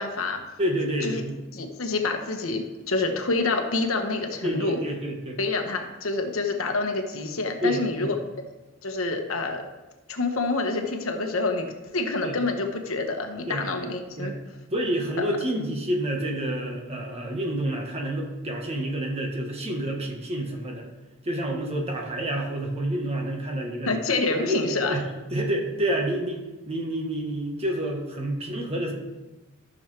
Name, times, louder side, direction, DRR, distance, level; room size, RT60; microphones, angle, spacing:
voice 1, 0.0-0.4 1.0-1.2 1.5-4.8 5.4-8.1 8.8-9.6 10.1-14.3 15.2-15.3 23.8-25.0, left 3 dB, 80° left, 5 dB, 1.1 m, -27 dB
voice 2, 0.6-1.4 4.4-5.4 7.6-8.1 12.2-12.4 13.5-13.7 14.2-14.4 14.7-20.9 21.2-24.0 24.3-25.0 25.3-26.4 26.7-28.9, right 1 dB, 30° right, 0 dB, 1.4 m, -28 dB
12.5 x 6.4 x 3.4 m, 1.1 s
head